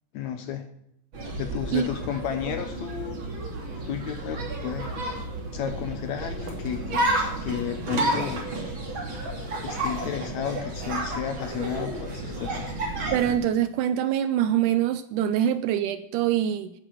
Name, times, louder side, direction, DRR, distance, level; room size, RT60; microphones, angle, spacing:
voice 1, 0.1-0.7 1.4-3.2 3.9-5.2 5.5-7.0 7.4-8.4 9.6-12.7, left 9 dB, 70° left, 8 dB, 1.8 m, -33 dB
sound 1, 1.1-13.3, right 1 dB, 35° right, 3.3 m, -31 dB
voice 2, 13.1-16.7, right 10 dB, 80° right, 12 dB, 1.9 m, -24 dB
9.9 x 9.7 x 7.8 m, 0.76 s
omnidirectional pair, 4.0 m